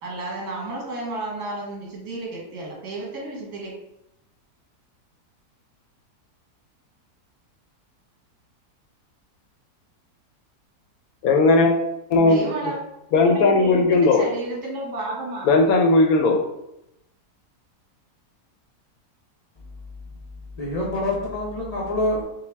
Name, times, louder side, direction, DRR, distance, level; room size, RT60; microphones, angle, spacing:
voice 1, 0.0-3.7 12.1-12.8 13.2-15.6, right 2 dB, 70° right, -3 dB, 1.9 m, -32 dB
voice 2, 11.2-11.8 12.1-12.5 13.1-14.2 15.5-16.4, left 3 dB, 70° left, 2 dB, 1.0 m, -17 dB
voice 3, 20.5-22.2, left 1 dB, 50° left, -4 dB, 0.4 m, -26 dB
5.6 x 2.3 x 3.3 m, 0.86 s
omnidirectional pair, 1.7 m